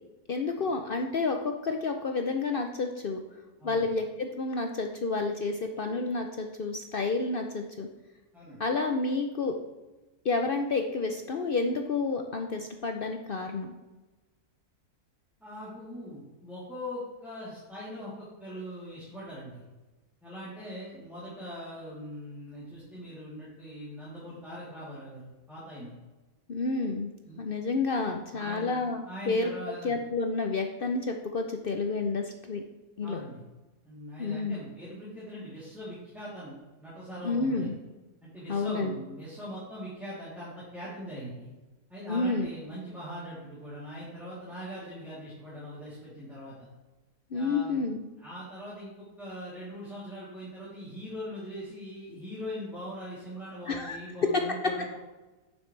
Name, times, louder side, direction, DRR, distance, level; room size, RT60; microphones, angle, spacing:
voice 1, 0.3-3.2 3.6-7.9 8.6-9.5 10.2-13.7 26.5-27.1 27.4-32.6 33.0-33.2 34.2-34.6 37.2-37.7 38.5-38.9 42.1-42.5 47.3-48.1 53.7-54.0 54.3-54.4, left 3 dB, 65° left, 4 dB, 0.5 m, -30 dB
voice 2, 15.4-19.6 20.2-25.9 27.3-27.4 28.3-29.9 33.0-33.4 33.8-36.5 36.8-37.7 38.2-41.5 41.9-46.7 47.3-47.9 48.2-55.0, equal, ahead, -10 dB, 2.8 m, -41 dB
9.3 x 7.3 x 3.2 m, 1.1 s
omnidirectional pair, 1.7 m